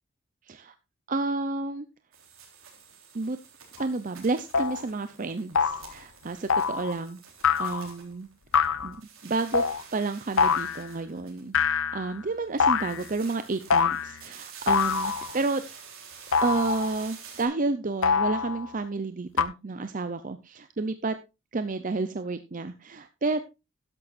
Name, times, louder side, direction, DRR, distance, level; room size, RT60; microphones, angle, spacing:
voice 1, 1.1-1.9 3.1-3.4 3.8-7.2 7.6-8.3 8.8-9.0 9.2-9.6 9.9-11.6 11.9-15.6 16.4-21.2 21.5-23.4, right 3 dB, 40° right, 10 dB, 0.6 m, -30 dB
sound 1, 2.1-8.7 8.9-11.8 12.6-17.5, right 6 dB, 85° right, 3.6 m, -48 dB
sound 2, 3.8-3.9 4.5-4.8 5.5-5.9 6.5-6.9 7.4-7.9 8.5-8.9 9.5-9.8 10.4-10.9 11.5-12.2 12.6-13.1 13.7-14.2 14.7-15.4 16.3-17.0 18.0-18.7 19.4-19.5, left 6 dB, 80° left, 0.8 m, -25 dB
13.0 x 11.0 x 2.5 m, 0.26 s
head